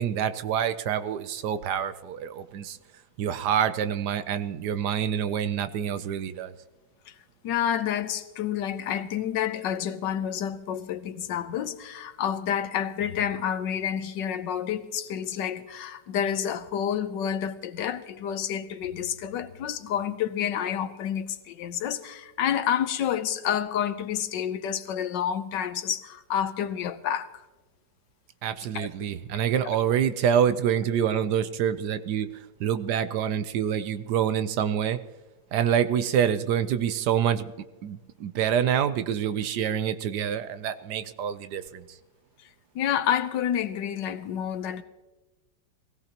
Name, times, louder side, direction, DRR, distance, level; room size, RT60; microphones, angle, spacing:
voice 1, 0.0-2.8 3.2-6.5 28.4-35.0 35.5-37.5 37.8-41.8, right 9 dB, 75° right, 1.2 m, -26 dB
voice 2, 7.4-27.3 28.7-28.9 42.7-44.8, left 9 dB, 90° left, 1.5 m, -29 dB
22.0 x 16.5 x 2.9 m
omnidirectional pair, 1.9 m